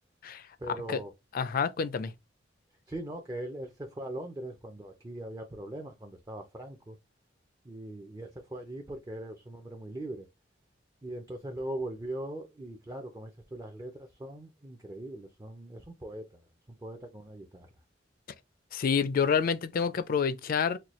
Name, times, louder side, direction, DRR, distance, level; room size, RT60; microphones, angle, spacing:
voice 1, 0.6-1.1 2.9-7.0 7.6-10.3 11.0-16.4 16.7-17.7, right 1 dB, 20° right, 0.5 m, -40 dB
voice 2, 1.3-2.1 18.7-20.8, left 6 dB, 50° left, 0.4 m, -28 dB
4.3 x 2.2 x 3.0 m
head